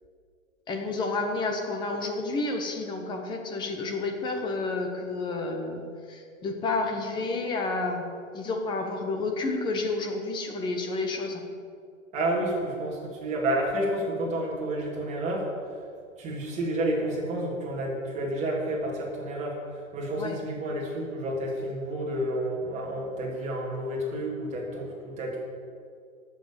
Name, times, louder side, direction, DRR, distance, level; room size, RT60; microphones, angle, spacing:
voice 1, 0.7-5.8 6.1-11.5 20.2-20.4, left 3 dB, 10° left, 4 dB, 1.0 m, -30 dB
voice 2, 12.1-15.4 16.2-19.6 19.9-25.4, right 1 dB, 15° right, -4 dB, 3.1 m, -30 dB
12.0 x 7.5 x 9.1 m, 2.2 s
hypercardioid pair, 155°, 41 cm